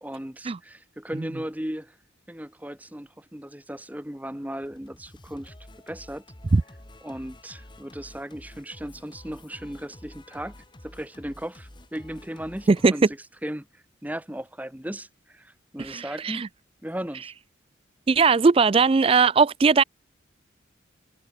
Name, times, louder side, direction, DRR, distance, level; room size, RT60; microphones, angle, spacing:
voice 1, 0.0-2.0 2.3-5.5 5.9-6.2 7.0-10.5 10.8-16.5 16.8-17.3, equal, 10° right, 1.1 m, -36 dB
Singing, 4.6-12.9, left 1 dB, 25° left, 1.7 m, -49 dB
voice 2, 15.8-16.5 18.1-19.8, right 4 dB, 30° right, 0.3 m, -19 dB
head